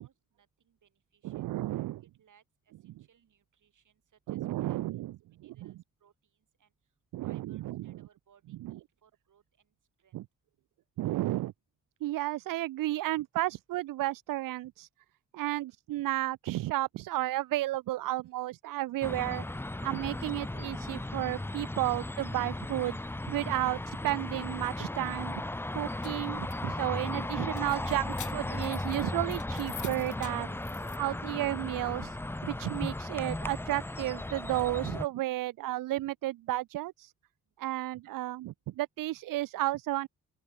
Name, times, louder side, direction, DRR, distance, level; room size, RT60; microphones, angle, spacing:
voice 1, 0.0-1.5 2.2-4.4 4.7-4.8 5.4-6.1 6.6-6.7 7.2-9.7 10.0-10.1 15.5-15.7 37.6-38.0, right 8 dB, 65° right, 5.9 m, -67 dB
voice 2, 1.2-2.0 4.3-5.1 5.4-5.7 7.1-7.9 8.6-8.7 10.1-10.2 11.0-11.5 12.0-14.9 15.3-23.0 23.3-25.4 25.7-30.6 31.0-32.2 32.4-37.1 37.6-40.1, right 16 dB, 85° right, 0.5 m, -33 dB
sound 1, 19.0-35.0, left 1 dB, 5° left, 0.6 m, -36 dB
sound 2, 25.7-31.0, left 9 dB, 65° left, 1.9 m, -48 dB
open air
cardioid pair, 95°, 33 cm